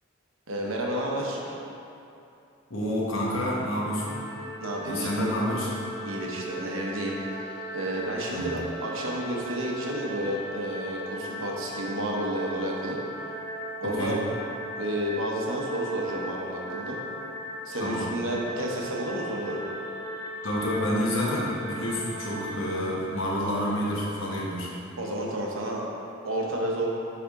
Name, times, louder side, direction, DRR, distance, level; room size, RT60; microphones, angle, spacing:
voice 1, 0.5-1.6 4.6-5.3 6.0-13.0 13.8-14.2 14.8-17.0 17.6-19.6 25.0-25.8 26.2-26.9, right 1 dB, 75° right, -2 dB, 0.9 m, -31 dB
voice 2, 2.7-4.2 4.8-5.8 8.3-8.6 13.8-14.2 17.8-18.1 20.4-24.7, equal, 75° left, -5 dB, 1.2 m, -28 dB
sound 1, 3.9-22.6, equal, ahead, 1.0 m, -38 dB
8.3 x 3.4 x 3.7 m, 2.7 s
head